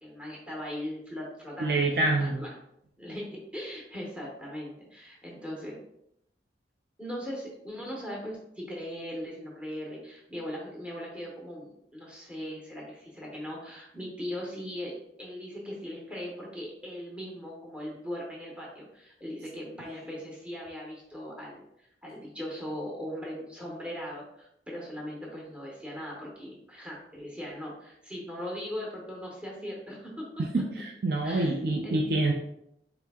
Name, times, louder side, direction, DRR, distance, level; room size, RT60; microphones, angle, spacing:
voice 1, 0.0-2.5 3.0-5.8 7.0-30.6 31.2-32.1, equal, 5° right, -3 dB, 0.7 m, -39 dB
voice 2, 1.6-2.5 30.4-32.3, right 2 dB, 55° right, 1 dB, 0.4 m, -26 dB
4.1 x 2.7 x 3.5 m, 0.77 s
head